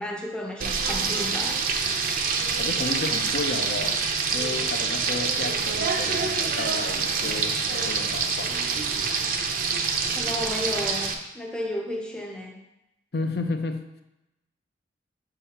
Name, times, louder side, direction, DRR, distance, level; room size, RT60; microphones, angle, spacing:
voice 1, 0.0-1.6 10.1-12.6, left 1 dB, 5° left, 1 dB, 0.6 m, -33 dB
Frying (food), 0.6-11.1, right 5 dB, 50° right, 0.5 m, -26 dB
voice 2, 2.6-4.1 4.3-8.5 13.1-13.9, left 3 dB, 60° left, 7 dB, 0.5 m, -32 dB
7.1 x 5.0 x 2.9 m, 0.92 s
head